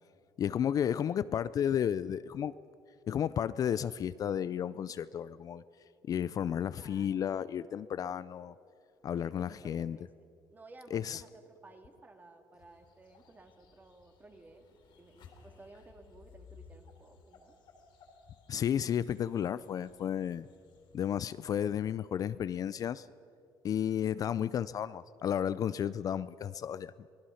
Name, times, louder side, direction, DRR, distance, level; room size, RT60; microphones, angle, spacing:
voice 1, 0.4-2.5 3.1-5.6 6.1-8.5 9.0-10.0 10.9-11.2 18.5-20.5 20.9-23.1 23.6-27.1, left 9 dB, 45° left, 15 dB, 0.4 m, -32 dB
voice 2, 6.7-7.3 9.1-10.1 10.5-17.6, right 2 dB, 20° right, 5 dB, 2.0 m, -56 dB
sound 1, 12.6-21.3, left 5 dB, 70° left, 3.6 m, -59 dB
27.0 x 18.0 x 5.7 m, 2.5 s
cardioid pair, 120°, 8 cm